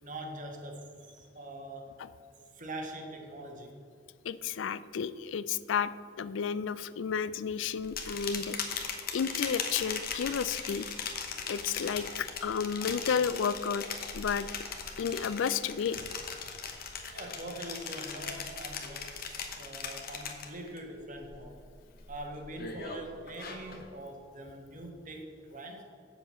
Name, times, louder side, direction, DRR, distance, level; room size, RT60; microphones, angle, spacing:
voice 1, 0.0-1.9 2.5-3.8 17.1-21.6 22.1-25.8, right 1 dB, 45° right, 3 dB, 1.4 m, -43 dB
voice 2, 4.2-5.9 6.2-8.6 9.1-10.9 11.5-13.8 14.1-14.5 15.0-16.0, left 6 dB, 80° left, 15 dB, 0.4 m, -32 dB
sound 1, 7.8-20.8 21.1-21.6 22.0-23.9, left 6 dB, 50° left, 1.1 m, -39 dB
7.9 x 7.3 x 5.7 m, 2.2 s
head